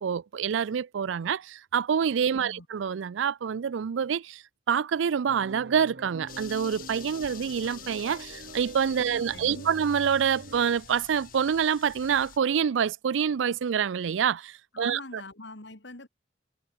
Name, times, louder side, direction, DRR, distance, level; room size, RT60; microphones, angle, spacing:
voice 1, 0.0-4.4 4.7-15.2, right 7 dB, 85° right, 0.4 m, -27 dB
voice 2, 2.3-2.7 9.0-9.7 14.7-16.1, left 2 dB, 75° left, 3.0 m, -44 dB
sound 1, 5.3-10.8, right 2 dB, 60° right, 1.0 m, -45 dB
sound 2, 6.3-12.4, left 9 dB, 45° left, 0.8 m, -48 dB
head